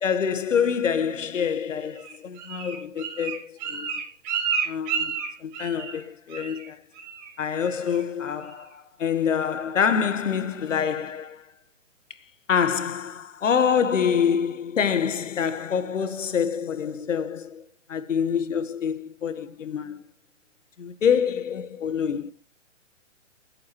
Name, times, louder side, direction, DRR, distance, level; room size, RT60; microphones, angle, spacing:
voice 1, 0.0-3.9 4.7-5.1 5.4-6.8 7.4-11.4 12.5-20.0 20.8-22.3, left 7 dB, 75° left, 1.5 m, -26 dB
Bird, 2.0-6.0 6.3-6.7 7.0-7.3 7.6-8.0 8.4-8.5, right 6 dB, 35° right, 3.6 m, -31 dB
18.5 x 8.6 x 3.1 m
hypercardioid pair, 145°, 37 cm